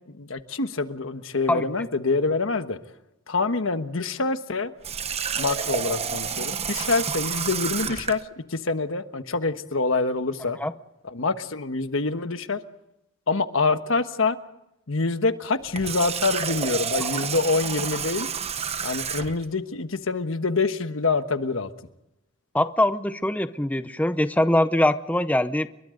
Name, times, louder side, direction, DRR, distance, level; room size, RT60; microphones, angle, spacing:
voice 1, 0.2-2.8 3.3-4.7 5.3-10.6 11.0-12.6 13.3-14.4 14.9-18.3 18.8-21.7, left 3 dB, 75° left, 9 dB, 1.3 m, -26 dB
Water tap faucet, 4.8-8.2 15.6-19.5, right 7 dB, 30° right, 1.0 m, -29 dB
voice 2, 22.5-25.7, left 1 dB, 5° left, 11 dB, 0.7 m, -22 dB
30.0 x 23.5 x 3.9 m, 0.88 s
head